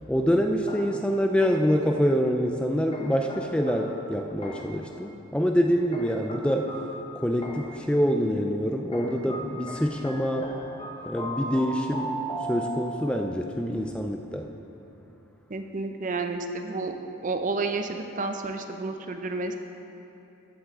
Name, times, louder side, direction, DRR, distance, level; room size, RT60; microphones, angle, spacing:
voice 1, 0.0-6.8 7.2-10.5 11.1-14.5, equal, 5° left, 3 dB, 0.3 m, -26 dB
sound 1, 0.7-1.9 2.9-4.9 5.9-7.9 8.9-13.2, right 1 dB, 25° left, 1.0 m, -38 dB
voice 2, 15.5-17.0 17.2-19.5, right 3 dB, 40° right, 6 dB, 0.6 m, -30 dB
14.0 x 8.2 x 3.7 m, 2.9 s
head